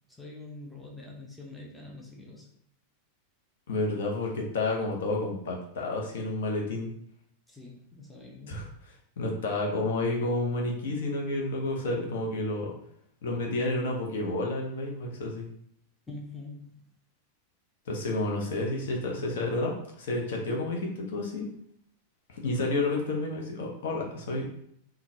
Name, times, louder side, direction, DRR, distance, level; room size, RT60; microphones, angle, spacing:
voice 1, 0.1-2.5 7.5-8.8 16.1-16.8, left 2 dB, 5° left, -2 dB, 0.8 m, -45 dB
voice 2, 3.7-6.9 8.5-8.7 9.2-12.7 13.2-15.5 17.9-21.5 22.3-24.4, left 2 dB, 60° left, 0 dB, 0.8 m, -30 dB
3.7 x 2.3 x 2.7 m, 0.70 s
figure-of-eight pair, 90°, 0 cm